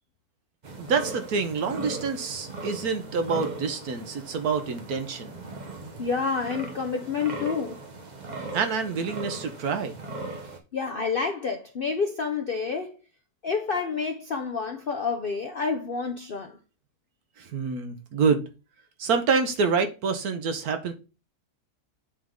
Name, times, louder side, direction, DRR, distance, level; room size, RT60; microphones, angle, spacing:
sound 1, 0.6-10.6, right 2 dB, 30° right, 1.0 m, -39 dB
voice 1, 0.8-5.4 8.5-10.0 17.4-18.4 19.0-20.9, right 5 dB, 70° right, 1.4 m, -27 dB
voice 2, 6.0-7.8 10.7-12.9 13.4-16.6, left 5 dB, 60° left, 0.6 m, -29 dB
8.5 x 3.6 x 3.7 m
omnidirectional pair, 1.7 m